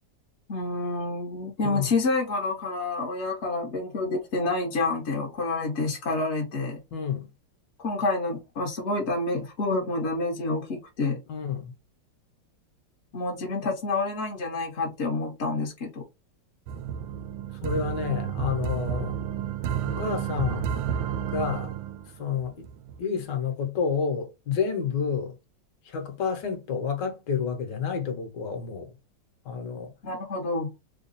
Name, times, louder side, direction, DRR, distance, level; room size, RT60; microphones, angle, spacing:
voice 1, 0.5-6.8 7.8-11.2 13.1-16.0 30.0-30.7, left 3 dB, 50° left, 0.8 m, -28 dB
voice 2, 6.9-7.3 11.3-11.7 17.6-19.2 19.8-20.6 21.3-21.7 22.2-22.7 23.0-25.4 25.8-28.9 29.4-29.9, left 6 dB, 70° left, 1.5 m, -29 dB
sound 1, 16.7-23.0, right 9 dB, 85° right, 1.3 m, -31 dB
3.5 x 2.3 x 3.9 m
omnidirectional pair, 2.1 m